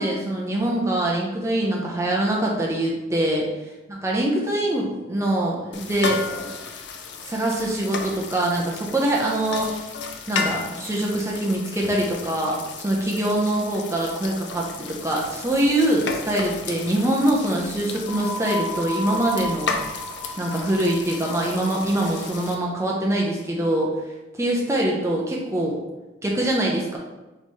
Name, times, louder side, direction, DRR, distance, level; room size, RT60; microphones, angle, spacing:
voice 1, 0.0-3.5 3.9-6.2 7.3-9.7 10.3-19.8 20.4-23.9 24.4-25.8 26.2-27.0, right 1 dB, 15° right, -2 dB, 0.5 m, -24 dB
sound 1, 5.7-22.5, left 5 dB, 65° left, 0.5 m, -34 dB
sound 2, 18.1-21.7, left 1 dB, 25° left, 0.9 m, -33 dB
3.9 x 3.1 x 4.1 m, 1.1 s
head